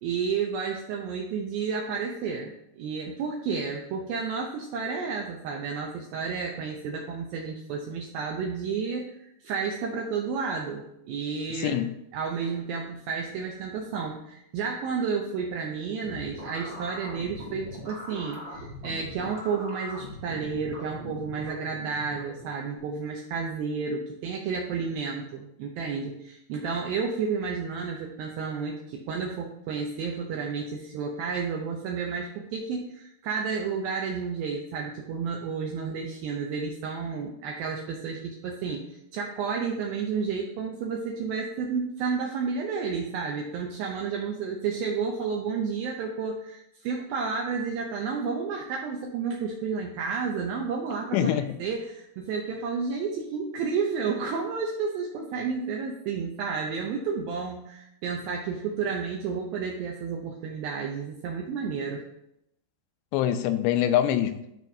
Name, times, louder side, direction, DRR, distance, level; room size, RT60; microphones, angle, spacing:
voice 1, 0.0-11.8 12.1-62.0, right 5 dB, 80° right, 0 dB, 2.1 m, -31 dB
voice 2, 11.5-11.9 51.1-51.6 63.1-64.4, left 11 dB, 90° left, 10 dB, 2.8 m, -24 dB
sound 1, 16.0-22.8, left 1 dB, 45° right, 1.6 m, -41 dB
12.5 x 4.6 x 2.7 m, 0.79 s
omnidirectional pair, 5.0 m